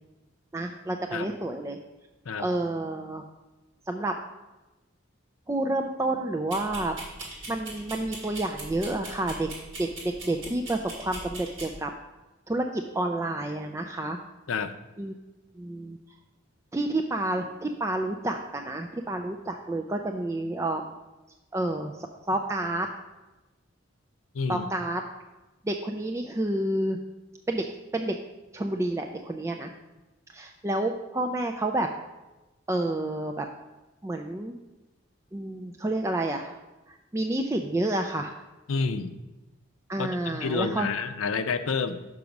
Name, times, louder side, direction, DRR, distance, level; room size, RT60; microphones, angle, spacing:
voice 1, 0.5-1.8 2.4-3.2 3.9-4.1 5.5-7.0 7.5-9.5 9.8-11.9 12.5-14.2 15.0-15.1 15.6-16.0 16.7-20.9 21.5-22.9 24.5-25.0 25.6-27.0 27.5-27.7 27.9-28.2 28.5-29.7 30.3-31.9 32.7-33.5 34.0-34.5 35.3-36.5 36.9-38.3 39.9-40.9, right 1 dB, 15° right, 3 dB, 0.3 m, -29 dB
sound 1, 6.5-11.7, right 2 dB, 60° right, 2.2 m, -41 dB
voice 2, 24.3-24.7 38.7-39.2 40.0-42.1, left 5 dB, 85° left, 9 dB, 0.5 m, -29 dB
6.1 x 5.2 x 5.8 m, 1.1 s
head